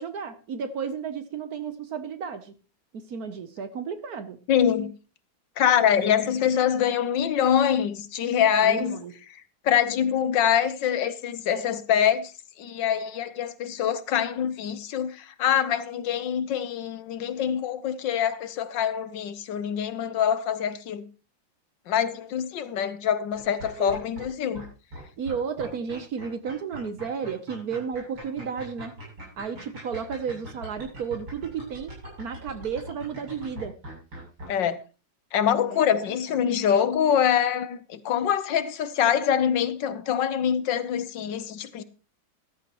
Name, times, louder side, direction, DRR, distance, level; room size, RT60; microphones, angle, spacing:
voice 1, 0.0-2.5 2.9-4.4 8.6-9.1 23.8-24.0 25.2-29.0 29.4-33.8 35.7-35.8 36.3-36.5, right 6 dB, 60° right, 1.2 m, -33 dB
voice 2, 4.5-4.9 5.6-9.0 9.6-12.3 12.6-21.0 21.9-24.6 34.5-34.8 35.3-41.8, left 9 dB, 70° left, 1.5 m, -24 dB
sound 1, 23.3-24.3 24.5-24.6 24.9-34.5, equal, 85° right, 8.9 m, -40 dB
13.5 x 13.0 x 3.0 m
omnidirectional pair, 2.1 m